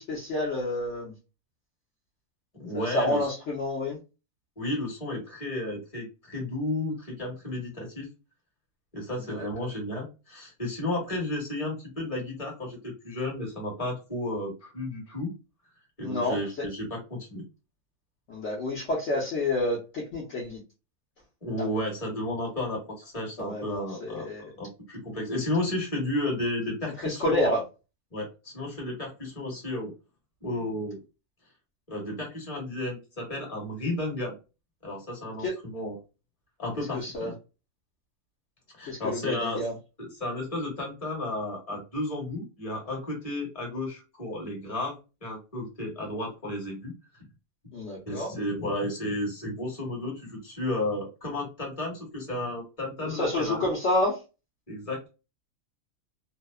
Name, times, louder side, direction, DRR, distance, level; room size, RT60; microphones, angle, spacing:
voice 1, 0.1-1.1 2.7-4.0 9.2-9.4 16.0-16.4 18.3-20.6 21.6-21.7 23.4-24.4 27.0-27.6 35.4-35.5 36.8-37.3 38.9-39.7 47.7-48.3 53.0-54.2, left 1 dB, 60° left, -3 dB, 1.0 m, -29 dB
voice 2, 2.6-3.3 4.6-8.1 8.9-15.3 16.0-17.4 21.4-24.3 24.6-27.4 28.1-29.9 30.4-31.0 31.9-34.4 34.8-36.0 36.6-37.3 38.8-39.6 40.2-46.9 48.0-53.7 54.7-55.1, left 1 dB, 25° left, -2 dB, 1.2 m, -33 dB
2.7 x 2.0 x 2.2 m, 0.29 s
omnidirectional pair, 1.5 m